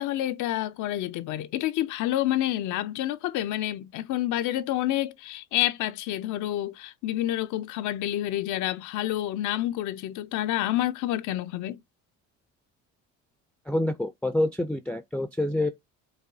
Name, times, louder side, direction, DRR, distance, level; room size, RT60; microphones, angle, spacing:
voice 1, 0.0-11.8, left 14 dB, 70° left, 0.5 m, -28 dB
voice 2, 13.7-15.7, left 1 dB, 5° left, 0.4 m, -27 dB
4.8 x 2.3 x 2.6 m
supercardioid pair, 80°, 31 cm